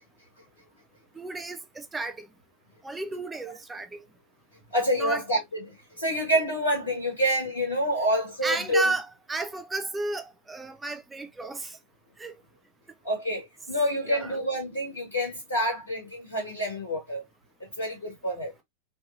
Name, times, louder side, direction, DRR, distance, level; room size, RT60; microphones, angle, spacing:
voice 1, 1.2-2.3 2.8-4.0 5.0-5.2 8.4-11.8 12.2-12.4 14.1-14.4, right 3 dB, 10° right, 0.4 m, -33 dB
voice 2, 4.7-9.0 13.0-17.2 17.8-18.5, equal, 75° left, 1.5 m, -27 dB
3.2 x 3.1 x 2.7 m
figure-of-eight pair, 90°, 0 cm